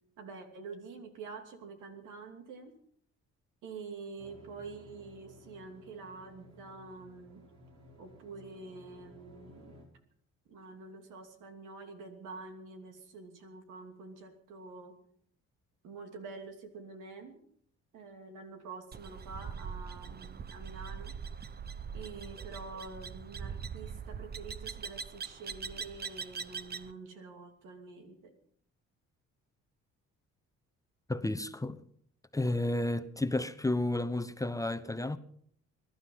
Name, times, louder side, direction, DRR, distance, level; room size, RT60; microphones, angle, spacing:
voice 1, 0.2-2.8 3.6-7.4 8.0-9.7 10.5-15.0 15.8-17.4 17.9-21.2 21.9-28.3, right 4 dB, 90° right, 2.9 m, -47 dB
sound 1, 4.2-9.8, left 1 dB, 60° right, 5.4 m, -56 dB
sound 2, 18.9-26.9, right 6 dB, 30° right, 0.8 m, -42 dB
voice 2, 31.1-31.8 32.3-35.2, left 2 dB, 10° left, 0.9 m, -32 dB
22.0 x 12.0 x 5.6 m
cardioid pair, 90°, 30 cm